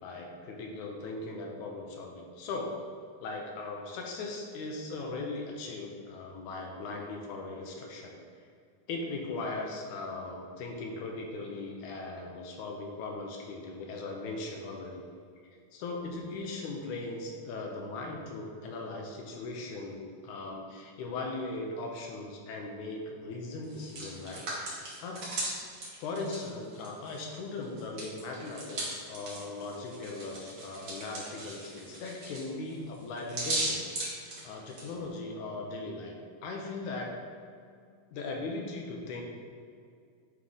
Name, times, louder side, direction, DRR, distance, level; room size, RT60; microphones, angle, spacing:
voice 1, 0.0-2.7 3.2-8.2 8.9-15.0 15.7-25.2 26.0-36.1 36.4-37.2 38.1-39.2, left 3 dB, 75° left, 1 dB, 2.0 m, -39 dB
Hands, 23.6-27.3 27.6-34.9, right 1 dB, 45° right, 1.5 m, -38 dB
9.4 x 3.2 x 3.9 m, 2.3 s
omnidirectional pair, 3.6 m